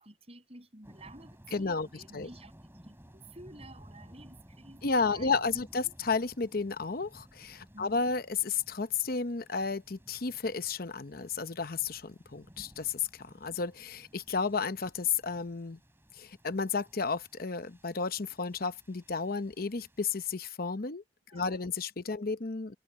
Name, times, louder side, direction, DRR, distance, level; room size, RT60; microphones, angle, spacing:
voice 1, 0.0-2.5 2.8-5.9 7.7-8.1 21.3-21.7, right 2 dB, 35° right, 7.7 m, -52 dB
sound 1, 0.8-20.4, equal, 15° right, 5.9 m, -57 dB
voice 2, 1.5-2.3 4.8-15.8 16.1-21.0 21.3-22.7, left 4 dB, 55° left, 0.9 m, -32 dB
head